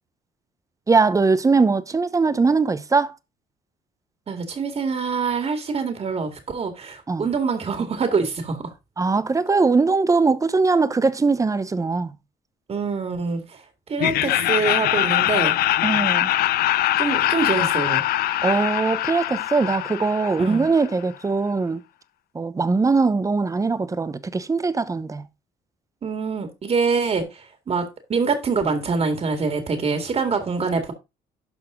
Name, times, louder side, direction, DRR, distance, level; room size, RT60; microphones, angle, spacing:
voice 1, 0.9-3.2 7.1-7.2 9.0-12.1 15.8-16.3 18.4-21.8 22.3-25.2, right 4 dB, 20° right, 0.8 m, -21 dB
voice 2, 4.3-8.6 12.7-13.4 13.9-15.5 17.0-18.0 20.4-20.7 26.0-30.9, right 5 dB, 35° right, 2.0 m, -25 dB
Laughter, 14.0-20.9, left 14 dB, 65° left, 0.5 m, -22 dB
12.0 x 4.2 x 3.7 m
cardioid pair, 110°, 17 cm